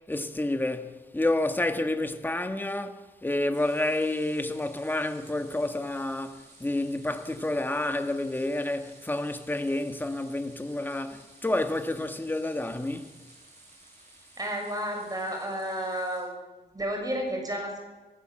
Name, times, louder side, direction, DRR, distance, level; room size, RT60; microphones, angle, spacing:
voice 1, 0.0-13.1, left 1 dB, 10° left, 1.5 m, -29 dB
sound 1, 3.5-16.2, right 2 dB, 45° right, 6.9 m, -55 dB
voice 2, 14.4-16.3 16.7-17.8, equal, 20° right, 6.7 m, -31 dB
27.0 x 16.0 x 7.6 m
wide cardioid pair, 140°, 17 cm